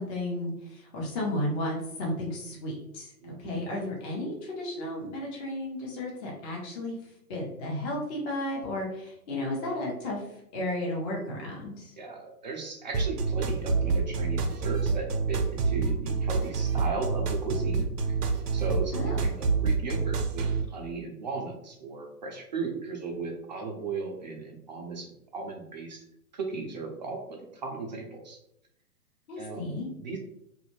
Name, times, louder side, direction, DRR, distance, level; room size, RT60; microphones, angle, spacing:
voice 1, 0.0-3.1 3.4-7.0 7.3-10.2 10.5-11.9 18.9-19.3 29.3-29.9, left 1 dB, 20° left, -3 dB, 0.8 m, -33 dB
voice 2, 3.2-3.6 12.0-18.2 18.5-26.0 26.3-28.4 29.4-29.6 30.0-30.2, right 4 dB, 30° right, 1 dB, 0.4 m, -36 dB
sound 1, 12.9-20.6, right 4 dB, 75° right, 0.6 m, -27 dB
2.6 x 2.5 x 3.0 m, 0.79 s
figure-of-eight pair, 120°, 47 cm